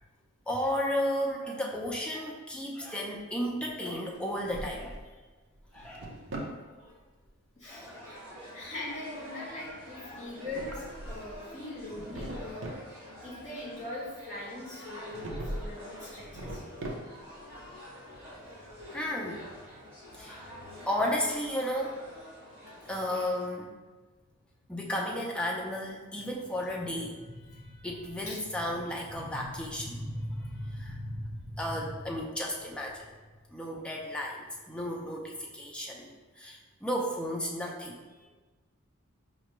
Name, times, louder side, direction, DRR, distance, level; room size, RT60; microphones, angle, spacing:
voice 1, 0.5-5.0 5.7-6.1 7.6-8.5 9.5-9.6 10.1-10.2 18.9-19.5 20.2-20.4 20.9-22.0 22.9-23.7 24.7-33.1 33.5-36.1 36.4-38.0, equal, 5° left, -2 dB, 0.3 m, -34 dB
Drawer open or close, 4.2-5.1 5.6-6.6 10.2-11.4 11.8-12.9 15.1-15.8 16.1-17.4, right 1 dB, 55° right, 0.5 m, -40 dB
voice 2, 6.6-7.0 7.6-8.2 8.5-12.7 13.2-16.6 27.4-27.8 28.3-28.4 30.5-30.9 38.2-38.3, left 2 dB, 30° left, -7 dB, 1.5 m, -42 dB
sound 1, 7.7-23.5, equal, 25° right, 1.4 m, -48 dB
4.9 x 2.2 x 3.0 m, 1.3 s
head